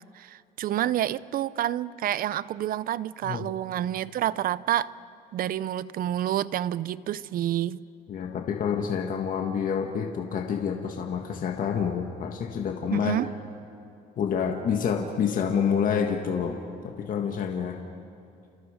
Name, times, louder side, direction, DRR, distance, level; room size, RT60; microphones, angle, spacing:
voice 1, 0.1-4.9 5.3-7.8 12.9-13.3, right 12 dB, 60° right, 18 dB, 0.6 m, -28 dB
voice 2, 8.1-13.2 14.2-16.6 16.8-17.8, left 7 dB, 55° left, 3 dB, 1.8 m, -28 dB
29.5 x 28.0 x 5.1 m, 2.5 s
cardioid pair, 110°, 17 cm